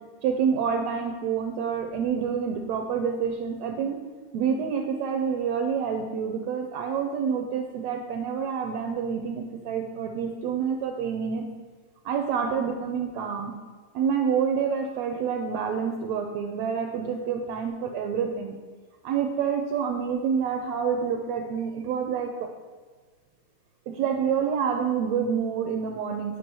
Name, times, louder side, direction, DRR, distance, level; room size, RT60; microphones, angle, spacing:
voice 1, 0.2-4.0 4.3-11.4 12.0-13.5 13.9-18.5 19.0-22.5 23.9-26.4, right 7 dB, 80° right, 4 dB, 1.6 m, -27 dB
6.1 x 4.9 x 5.3 m, 1.5 s
omnidirectional pair, 3.4 m